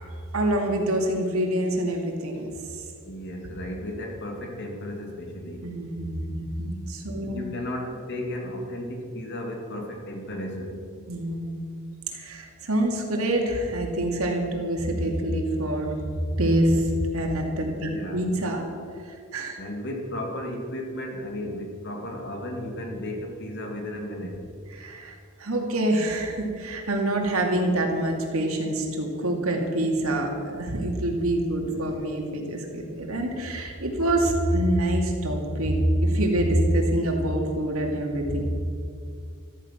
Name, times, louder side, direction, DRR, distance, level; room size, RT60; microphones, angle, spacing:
voice 1, 0.3-2.5 5.6-7.4 11.1-11.7 12.1-15.9 16.4-18.7 19.3-19.6 24.8-38.4, right 1 dB, 85° right, 1 dB, 2.6 m, -26 dB
voice 2, 3.0-5.7 7.2-11.1 17.7-18.2 19.6-24.5 31.6-31.8, left 1 dB, 55° left, 2 dB, 2.4 m, -34 dB
14.0 x 14.0 x 5.9 m, 2.3 s
head